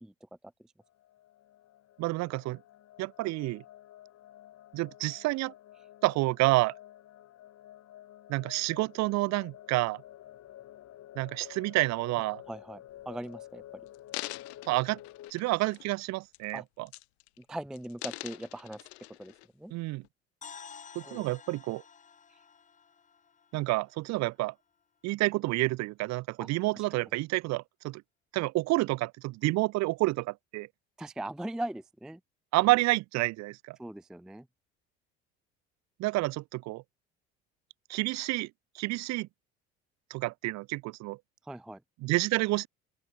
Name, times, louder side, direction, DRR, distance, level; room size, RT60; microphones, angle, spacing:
sound 1, 0.8-15.3, left 13 dB, 55° left, 4.0 m, -51 dB
voice 1, 2.0-2.6 3.0-3.6 4.7-5.5 6.0-6.7 8.3-10.0 11.2-12.4 14.6-15.0 15.3-16.9 19.7-20.0 20.9-21.8 23.5-24.5 25.0-28.0 28.3-30.7 32.5-33.8 36.0-36.8 37.9-39.3 40.1-41.2 42.0-42.7, right 20 dB, 55° right, 0.7 m, -29 dB
voice 2, 12.5-12.8 13.1-13.8 16.5-16.6 17.4-18.8 19.2-19.7 21.0-21.2 26.4-26.5 26.7-26.8 31.0-32.2 33.8-34.5 41.4-41.8, right 1 dB, ahead, 0.4 m, -40 dB
sound 2, 12.9-13.2 13.9-16.0 16.3-16.6 16.9-17.4 17.7-19.5 20.0-20.1, left 21 dB, 80° left, 0.7 m, -43 dB
sound 3, 20.4-24.4, left 6 dB, 25° left, 0.8 m, -51 dB
open air
hypercardioid pair, 65°, 32 cm